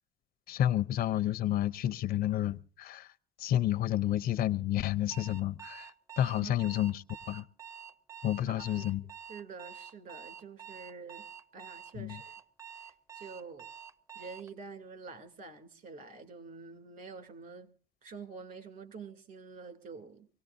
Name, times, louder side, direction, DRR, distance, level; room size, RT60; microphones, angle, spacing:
voice 1, 0.5-3.1 3.4-7.5 8.2-9.0 12.0-12.2, left 12 dB, 60° left, 0.6 m, -30 dB
Alarm, 5.1-14.5, right 8 dB, 20° right, 0.6 m, -48 dB
voice 2, 6.4-6.8 8.5-8.9 9.3-11.3 11.5-12.4 12.7-13.7 14.1-17.7 18.0-20.3, right 4 dB, 55° right, 2.8 m, -47 dB
25.0 x 17.5 x 2.6 m
cardioid pair, 110°, 17 cm